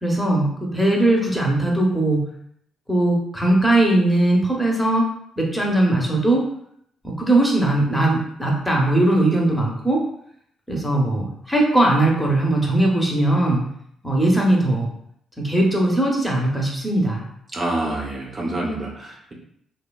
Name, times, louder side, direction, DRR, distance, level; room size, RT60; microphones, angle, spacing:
voice 1, 0.0-2.2 2.9-5.0 5.4-6.5 7.0-10.0 10.7-13.6 14.0-14.9 15.4-17.2, right 1 dB, 5° left, -2 dB, 0.7 m, -19 dB
voice 2, 17.5-19.3, right 1 dB, 35° right, -2 dB, 0.6 m, -27 dB
3.0 x 2.2 x 2.3 m, 0.68 s
cardioid pair, 90°, 0 cm